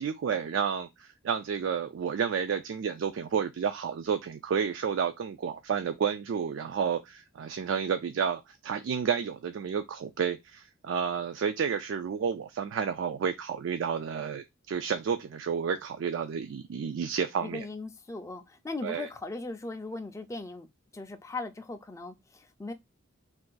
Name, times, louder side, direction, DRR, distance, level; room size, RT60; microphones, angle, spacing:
voice 1, 0.0-17.6 18.8-19.1, right 7 dB, 65° right, 0.3 m, -31 dB
voice 2, 17.4-20.7 20.9-22.7, left 3 dB, 15° left, 0.4 m, -38 dB
2.5 x 2.5 x 3.8 m
head